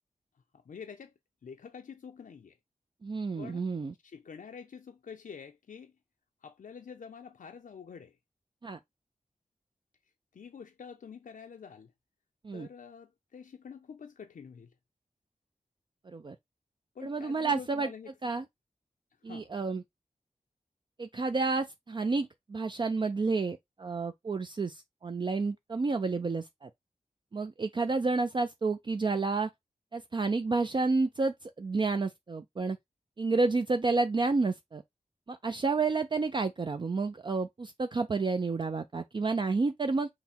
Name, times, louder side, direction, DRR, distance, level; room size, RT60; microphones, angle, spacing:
voice 1, 0.5-1.1 1.4-2.6 3.4-3.7 4.0-5.9 6.4-8.2 10.3-11.9 12.5-14.7 17.0-18.1 19.2-19.5, left 6 dB, 80° left, 0.5 m, -47 dB
voice 2, 3.0-3.9 8.6-8.8 12.4-12.7 16.1-16.4 17.0-17.9 18.2-18.4 19.2-19.8 21.0-26.7 27.3-29.5 29.9-32.8 33.2-34.8 35.3-40.1, right 3 dB, 35° right, 0.4 m, -30 dB
5.8 x 2.1 x 4.2 m
wide cardioid pair, 100°, 14 cm